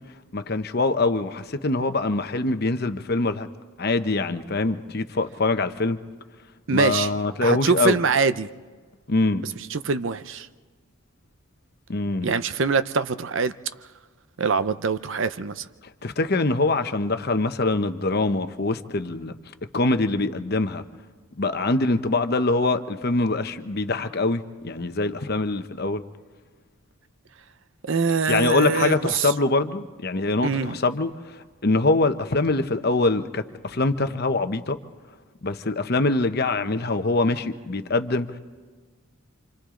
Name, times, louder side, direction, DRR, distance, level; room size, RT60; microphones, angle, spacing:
voice 1, 0.3-3.5 3.8-6.0 6.7-8.0 9.1-9.4 11.9-12.3 16.0-19.4 19.7-20.8 21.4-26.0 28.3-34.8 35.4-38.4, left 2 dB, 45° left, 0.9 m, -24 dB
voice 2, 6.7-7.1 7.4-8.5 9.7-10.5 12.2-13.5 14.4-15.7 27.8-29.3 30.4-30.8, right 5 dB, 60° right, 0.6 m, -23 dB
28.5 x 27.0 x 3.8 m
head